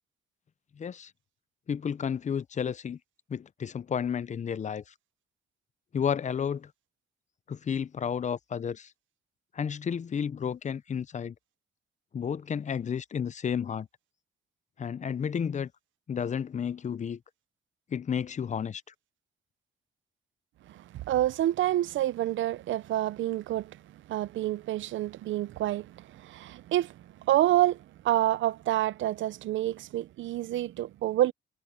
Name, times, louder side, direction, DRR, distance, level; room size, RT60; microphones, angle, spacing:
voice 1, 0.8-1.1 1.7-3.0 3.3-4.8 5.9-6.7 7.5-8.9 9.5-11.3 12.1-13.9 14.8-15.7 16.1-17.2 17.9-18.8, left 7 dB, 35° left, 0.6 m, -32 dB
voice 2, 20.7-31.3, right 14 dB, 75° right, 0.7 m, -28 dB
cardioid pair, 90°, 20 cm